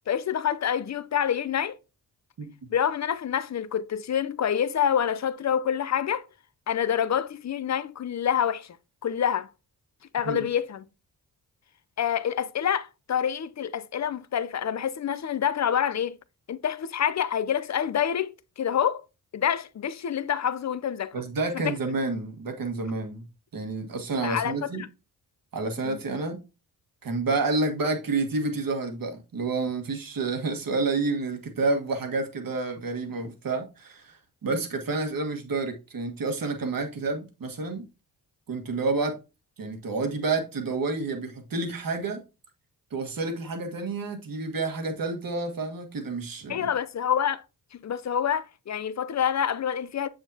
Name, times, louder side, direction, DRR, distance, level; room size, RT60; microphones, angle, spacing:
voice 1, 0.1-1.8 2.7-6.2 6.7-8.8 9.0-9.5 10.1-10.8 12.0-16.2 16.5-19.0 19.3-21.1 21.5-21.7 24.2-24.9 25.8-26.0 46.5-47.4 47.7-50.1, left 9 dB, 45° left, 0.6 m, -27 dB
voice 2, 2.4-2.7 10.2-10.5 21.1-23.2 23.5-24.8 25.5-26.4 27.0-37.8 38.5-39.2 39.6-42.2 42.9-46.7, right 3 dB, 60° right, 1.6 m, -29 dB
7.0 x 6.5 x 2.8 m
supercardioid pair, 50°, 39 cm